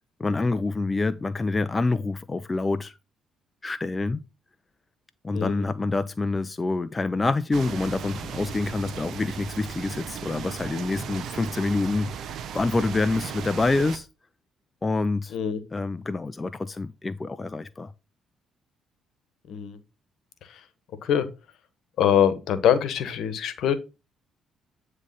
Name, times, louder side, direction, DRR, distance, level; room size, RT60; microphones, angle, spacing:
voice 1, 0.2-3.0 3.6-4.2 5.2-14.1 14.8-15.3 15.7-17.9, left 3 dB, 25° left, 0.5 m, -27 dB
voice 2, 5.3-5.6 15.3-15.6 19.5-19.8 21.0-21.3 22.0-23.8, left 9 dB, 60° left, 1.2 m, -23 dB
sound 1, 7.5-14.0, right 8 dB, 60° right, 0.8 m, -36 dB
9.4 x 3.3 x 5.5 m
hypercardioid pair, 50°, 0 cm